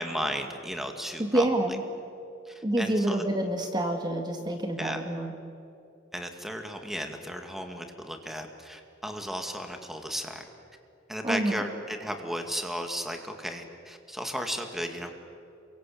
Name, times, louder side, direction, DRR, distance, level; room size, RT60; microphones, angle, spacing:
voice 1, 0.0-1.5 2.5-3.2 4.8-5.0 6.1-10.4 11.1-15.1, equal, ahead, 4 dB, 2.2 m, -34 dB
voice 2, 1.2-1.8 2.6-5.3 11.2-11.6, right 1 dB, 20° right, 4 dB, 1.9 m, -27 dB
28.5 x 23.5 x 8.7 m, 2.6 s
head